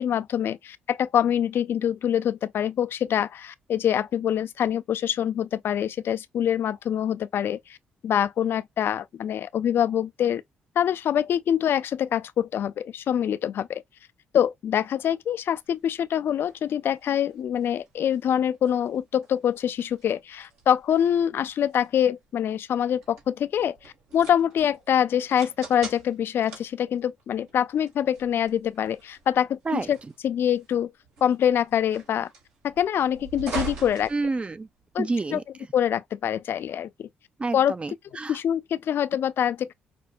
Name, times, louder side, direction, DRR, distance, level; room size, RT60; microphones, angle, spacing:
voice 1, 0.0-7.6 8.0-10.4 10.8-13.8 14.3-30.0 30.2-30.9 31.2-32.3 32.6-34.1 34.9-35.4 35.7-37.1 37.5-37.7 38.3-39.7, left 9 dB, 60° left, 0.4 m, -25 dB
sound 1, 15.6-35.0, right 5 dB, 80° right, 1.8 m, -43 dB
voice 2, 34.1-34.7 35.0-35.4 37.4-38.4, right 3 dB, 25° right, 0.4 m, -29 dB
5.1 x 2.1 x 2.3 m
hypercardioid pair, 50°, 4 cm